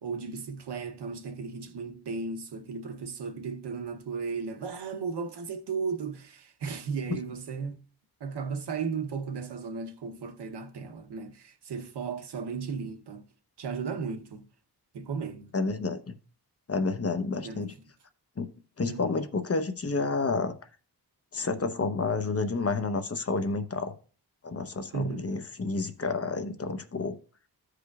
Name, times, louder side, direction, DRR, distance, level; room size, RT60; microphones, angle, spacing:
voice 1, 0.0-7.8 8.2-13.2 13.6-14.5 14.9-15.5 17.4-17.8 18.9-19.1 24.9-25.3, right 5 dB, 85° right, 0.9 m, -35 dB
voice 2, 15.5-16.1 16.7-17.7 18.4-18.5 18.8-20.5 21.3-23.9 24.4-27.2, left 3 dB, 35° left, 0.8 m, -30 dB
15.0 x 5.0 x 2.4 m
wide cardioid pair, 85°, 39 cm